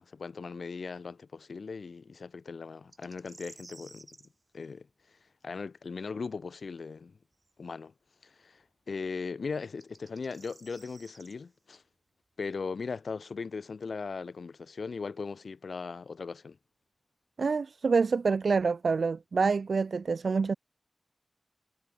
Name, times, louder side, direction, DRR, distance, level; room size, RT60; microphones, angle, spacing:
voice 1, 0.0-4.1 4.5-5.2 5.4-7.2 7.6-7.9 8.2-11.8 12.4-16.6, left 4 dB, 85° left, 4.8 m, -38 dB
sound 1, 2.9-4.3 7.4-7.5 9.6-11.3, right 2 dB, 45° right, 7.1 m, -53 dB
voice 2, 17.4-20.5, right 4 dB, 85° right, 0.9 m, -27 dB
wide cardioid pair, 55°, 0 cm